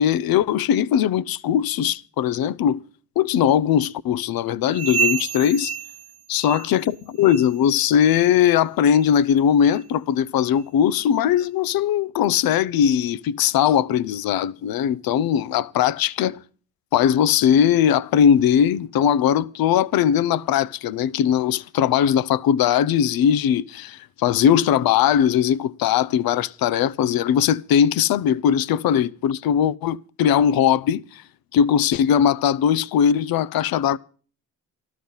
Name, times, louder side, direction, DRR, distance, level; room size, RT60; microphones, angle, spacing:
voice 1, 0.0-2.8 3.2-5.7 6.3-16.4 16.9-31.2 31.5-34.0, left 9 dB, 70° left, 0.7 m, -20 dB
sound 1, 4.7-6.9 7.2-7.6 8.0-8.3 8.9-9.1 9.7-9.8 10.6-10.7, right 7 dB, 40° right, 1.0 m, -29 dB
13.5 x 12.5 x 5.5 m
supercardioid pair, 50°, 37 cm